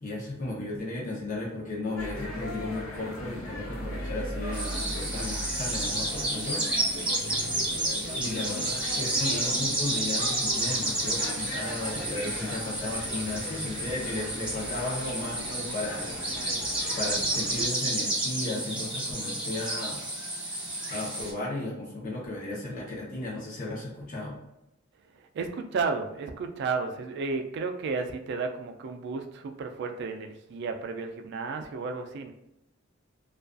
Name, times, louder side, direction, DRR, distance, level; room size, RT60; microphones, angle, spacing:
voice 1, 0.0-6.6 8.2-16.1 17.0-20.0 20.9-24.4, left 2 dB, 40° left, -5 dB, 0.6 m, -35 dB
sound 1, 2.0-17.7, left 1 dB, 90° left, 0.6 m, -38 dB
sound 2, 4.5-21.3, right 1 dB, 5° right, 0.6 m, -31 dB
voice 2, 25.3-32.3, right 4 dB, 60° right, 5 dB, 0.3 m, -32 dB
2.3 x 2.3 x 2.4 m, 0.88 s
head